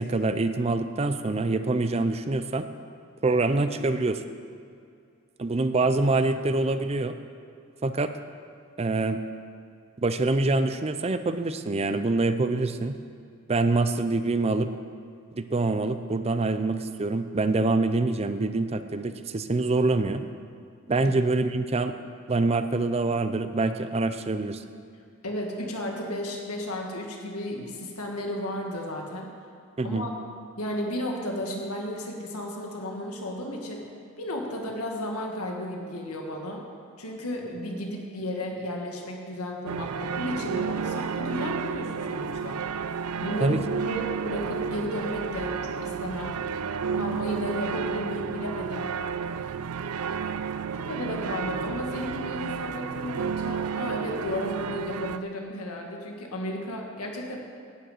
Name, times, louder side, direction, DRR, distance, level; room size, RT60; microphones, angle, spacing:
voice 1, 0.0-2.7 3.2-4.2 5.4-7.1 7.8-8.1 8.8-9.2 10.0-13.0 13.5-14.7 15.4-20.2 20.9-21.9 22.3-24.6 29.8-30.1 43.4-43.6, right 3 dB, 30° right, 10 dB, 0.5 m, -25 dB
voice 2, 25.2-29.3 29.8-30.2 30.6-33.9 34.2-36.7 37.0-42.6 43.2-46.4 46.9-48.9 50.7-57.4, left 1 dB, 90° left, 0 dB, 1.9 m, -33 dB
sound 1, 39.7-55.2, right 6 dB, 85° right, 0.5 m, -31 dB
11.5 x 6.4 x 9.2 m, 2.3 s
head